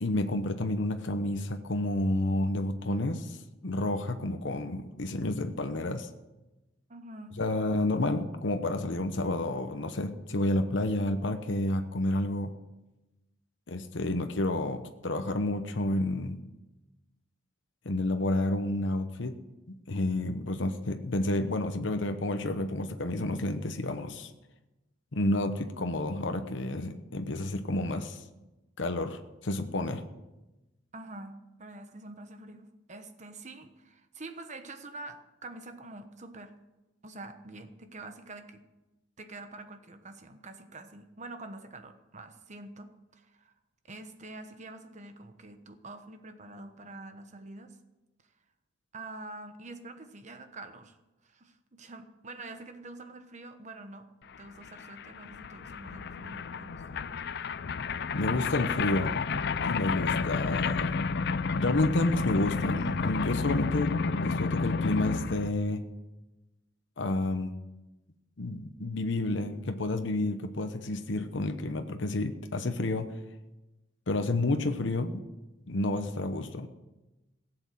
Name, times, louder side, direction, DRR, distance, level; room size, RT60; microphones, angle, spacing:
voice 1, 0.0-3.4 3.6-6.1 7.4-12.5 13.7-16.4 17.8-19.3 19.7-24.3 25.1-28.2 28.8-30.0 58.1-59.3 59.6-61.0 61.5-65.8 67.0-67.5 68.4-73.1 74.1-75.2 75.7-76.7, left 2 dB, 75° left, 7 dB, 0.9 m, -30 dB
voice 2, 6.9-7.4 30.9-36.5 37.0-38.6 39.2-43.5 43.8-47.8 48.9-51.0 51.2-54.1 54.4-57.1 58.3-58.5, right 2 dB, 40° right, 8 dB, 1.2 m, -46 dB
sound 1, 54.4-54.5 54.6-65.5, left 4 dB, 60° left, 0.5 m, -31 dB
16.5 x 7.9 x 7.7 m, 1.0 s
head